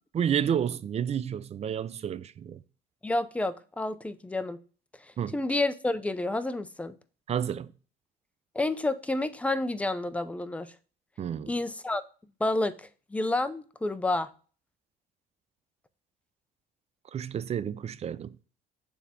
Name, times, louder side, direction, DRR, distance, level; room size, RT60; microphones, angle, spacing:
voice 1, 0.1-2.6 5.2-5.4 7.3-7.7 11.2-11.5 17.1-18.4, right 8 dB, 40° right, 0.5 m, -30 dB
voice 2, 3.0-4.6 5.3-6.9 8.5-10.7 11.5-12.0 12.4-14.3, left 2 dB, 10° left, 0.5 m, -29 dB
7.1 x 3.5 x 4.3 m
cardioid pair, 110°, 17 cm